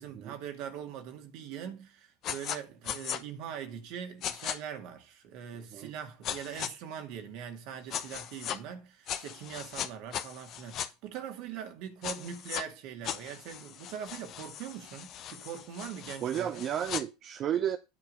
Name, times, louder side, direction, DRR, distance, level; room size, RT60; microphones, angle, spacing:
voice 1, 0.0-16.6, right 8 dB, 60° right, 2.2 m, -42 dB
sound 1, 2.2-2.6 2.9-3.2 4.2-4.6 6.2-6.7 7.9-8.6 9.1-10.9 12.0-12.6 13.0-17.0, left 10 dB, 50° left, 1.1 m, -38 dB
voice 2, 16.2-17.8, right 10 dB, 45° right, 0.7 m, -32 dB
9.8 x 4.6 x 6.7 m
hypercardioid pair, 75°, 0 cm